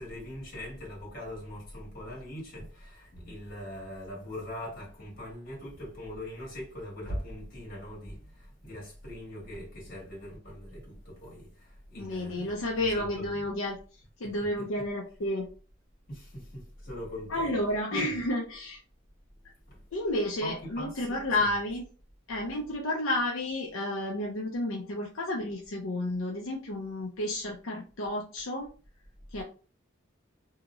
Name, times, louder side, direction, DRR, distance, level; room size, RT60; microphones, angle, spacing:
voice 1, 0.0-13.4 14.4-14.7 16.1-17.6 17.9-18.2 19.7-19.8 20.4-21.5, equal, 45° left, 1.7 m, -41 dB
voice 2, 12.0-13.8 14.2-15.5 17.3-18.8 19.9-21.8 22.3-28.7 29.3-29.4, left 1 dB, 80° left, 0.6 m, -31 dB
3.0 x 2.8 x 2.4 m
head